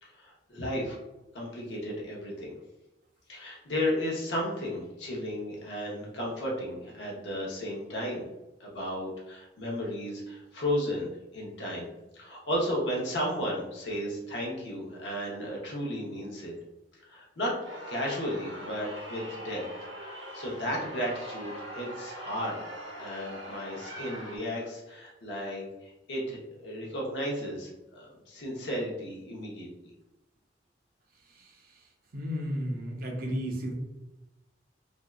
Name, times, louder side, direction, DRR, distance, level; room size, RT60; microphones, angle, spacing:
voice 1, 0.0-1.0 1.3-2.5 3.3-8.3 8.6-16.5 17.1-17.5 17.9-19.6 20.0-22.6 23.0-29.7, equal, 70° left, -3 dB, 0.8 m, -34 dB
sound 1, 17.6-24.4, equal, 90° right, 0.8 m, -42 dB
voice 2, 32.1-33.7, equal, 55° right, 0 dB, 0.5 m, -32 dB
2.5 x 2.2 x 2.3 m, 1.0 s
head